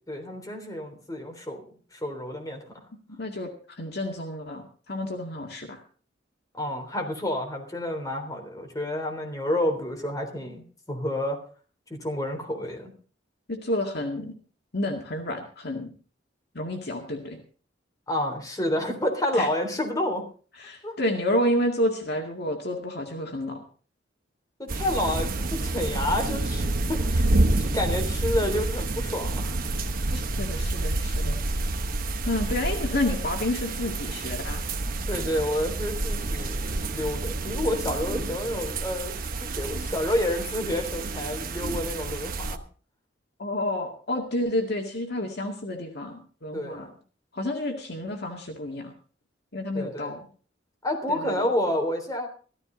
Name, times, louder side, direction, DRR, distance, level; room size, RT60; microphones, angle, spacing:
voice 1, 0.1-1.6 1.9-2.6 6.5-11.4 11.9-12.9 18.1-20.3 20.8-20.9 24.6-27.3 27.6-29.7 30.1-30.2 35.1-36.6 36.9-42.6 46.5-46.9 49.7-50.1 50.8-52.3, left 1 dB, 20° left, 3 dB, 3.5 m, -29 dB
voice 2, 3.2-3.5 3.8-5.8 13.5-14.3 14.7-15.9 16.5-17.4 19.3-19.5 20.6-23.6 30.1-31.4 32.3-34.6 43.4-46.9 47.3-48.9 49.5-50.2 51.1-51.5, left 1 dB, 60° left, 3 dB, 2.1 m, -30 dB
sound 1, 24.7-42.6, right 2 dB, 50° right, 1.0 m, -28 dB
15.0 x 14.0 x 3.9 m, 0.41 s
head